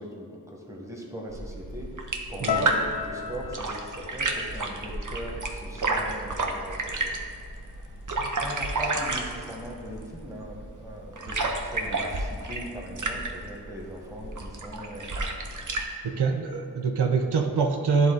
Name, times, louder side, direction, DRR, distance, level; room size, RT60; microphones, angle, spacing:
voice 1, 0.0-7.2 7.7-7.9 8.4-15.3, equal, 5° right, -2 dB, 1.5 m, -39 dB
sound 1, 1.3-15.9, right 2 dB, 50° right, 0.8 m, -31 dB
sound 2, 2.5-6.7 6.9-7.7 8.3-8.5, left 7 dB, 80° left, 0.6 m, -37 dB
voice 2, 16.0-18.1, right 5 dB, 85° right, 3 dB, 0.6 m, -25 dB
10.5 x 3.7 x 3.9 m, 2.4 s
cardioid pair, 50°, 40 cm